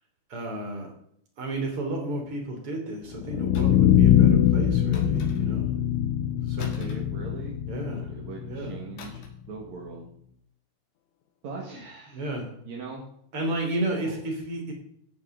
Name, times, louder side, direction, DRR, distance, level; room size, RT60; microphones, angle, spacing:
voice 1, 0.3-0.9 1.4-5.7 6.5-7.0 7.7-8.1 8.4-8.8 11.7-11.8 12.1-12.5 13.3-14.7, right 1 dB, 30° right, 2 dB, 3.5 m, -32 dB
sound 1, 3.1-9.2, left 10 dB, 80° left, 3.2 m, -23 dB
sound 2, 3.5-4.0 4.9-5.7 6.6-7.8 9.0-9.5 9.7-10.0, left 3 dB, 60° left, 2.9 m, -46 dB
voice 2, 6.6-10.1 11.4-12.2 12.6-13.0 14.0-14.1, right 4 dB, 55° right, -1 dB, 2.1 m, -41 dB
15.0 x 10.5 x 3.9 m, 0.66 s
omnidirectional pair, 5.8 m